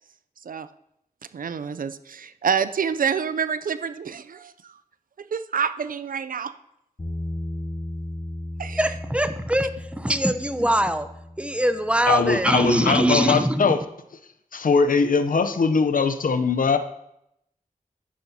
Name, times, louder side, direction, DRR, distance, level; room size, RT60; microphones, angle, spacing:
voice 1, 1.3-4.7 5.2-6.5 8.6-8.9, right 7 dB, 75° right, 13 dB, 0.5 m, -27 dB
Bass guitar, 7.0-13.2, left 1 dB, 35° left, 4.4 m, -36 dB
voice 2, 8.8-11.1 11.4-13.7, right 1 dB, 10° right, 10 dB, 0.7 m, -22 dB
voice 3, 12.1-13.8 14.5-16.8, left 5 dB, 70° left, 10 dB, 0.7 m, -21 dB
10.5 x 10.0 x 2.8 m, 0.80 s
wide cardioid pair, 60°, 15 cm